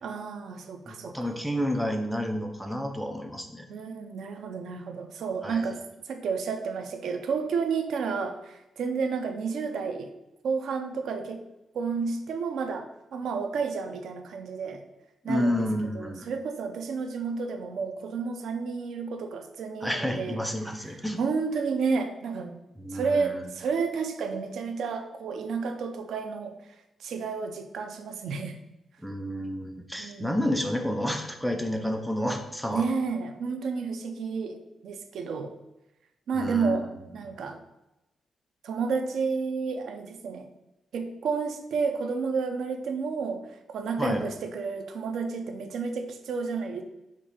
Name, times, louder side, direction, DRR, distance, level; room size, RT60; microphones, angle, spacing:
voice 1, 0.0-1.4 3.7-5.8 6.1-10.1 10.4-11.4 11.7-14.8 15.2-15.7 15.9-20.4 20.8-22.5 22.9-26.6 27.0-28.6 30.0-30.4 32.7-35.5 36.3-37.6 38.6-40.5 40.9-43.4 43.7-46.8, right 5 dB, 80° right, 6 dB, 0.7 m, -31 dB
voice 2, 0.9-3.7 5.4-5.7 15.3-16.3 19.8-21.2 22.8-23.5 29.0-32.8 36.3-36.9 44.0-44.2, equal, ahead, 3 dB, 0.7 m, -30 dB
5.2 x 3.8 x 5.5 m, 0.95 s
wide cardioid pair, 145°, 0 cm